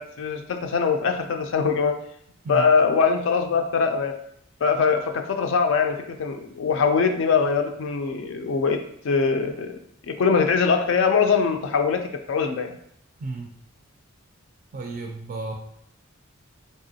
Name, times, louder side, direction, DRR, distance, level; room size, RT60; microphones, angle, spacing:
voice 1, 0.0-2.0 2.5-4.2 4.6-8.8 9.0-9.8 10.1-12.8, left 5 dB, 60° left, 5 dB, 0.3 m, -22 dB
voice 2, 13.2-13.5 14.7-15.5, right 3 dB, 35° right, 2 dB, 0.3 m, -32 dB
3.7 x 3.3 x 2.7 m, 0.71 s
head